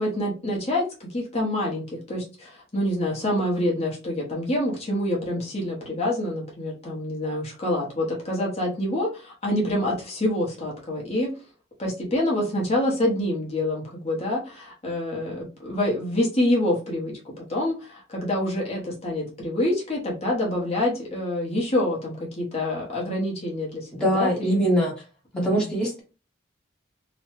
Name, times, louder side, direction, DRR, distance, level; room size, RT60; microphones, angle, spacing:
voice 1, 0.0-11.3 11.8-24.5 25.3-25.7, left 1 dB, 30° left, -2 dB, 0.9 m, -26 dB
voice 2, 24.0-24.9 25.4-26.0, equal, 5° left, -4 dB, 0.9 m, -22 dB
3.0 x 2.1 x 3.0 m, 0.32 s
head